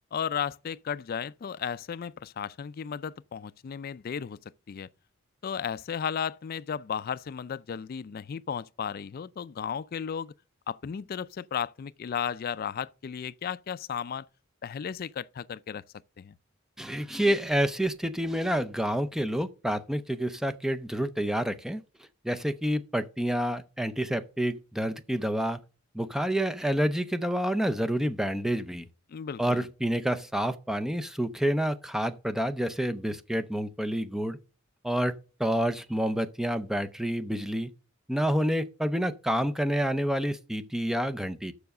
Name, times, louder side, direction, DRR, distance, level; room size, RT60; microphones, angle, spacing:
voice 1, 0.1-4.9 5.4-10.3 10.7-14.3 14.6-15.8 16.2-16.3 29.1-29.7, left 7 dB, 50° left, 0.4 m, -34 dB
voice 2, 16.8-21.8 22.2-25.6 25.9-28.9 29.4-34.4 34.8-37.7 38.1-41.5, equal, ahead, 0.5 m, -28 dB
7.0 x 6.2 x 6.6 m
head